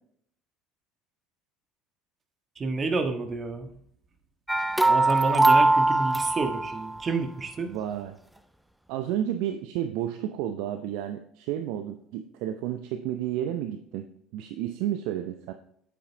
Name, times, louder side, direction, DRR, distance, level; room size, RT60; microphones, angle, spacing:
voice 1, 2.6-3.7 4.8-7.7, right 3 dB, 35° right, 6 dB, 1.5 m, -29 dB
sound 1, 4.5-7.0, right 2 dB, 5° right, 0.6 m, -21 dB
voice 2, 7.7-8.2 8.9-14.0 14.3-15.5, right 11 dB, 65° right, 8 dB, 0.6 m, -31 dB
8.6 x 8.6 x 2.8 m, 0.67 s
hypercardioid pair, 65°, 0 cm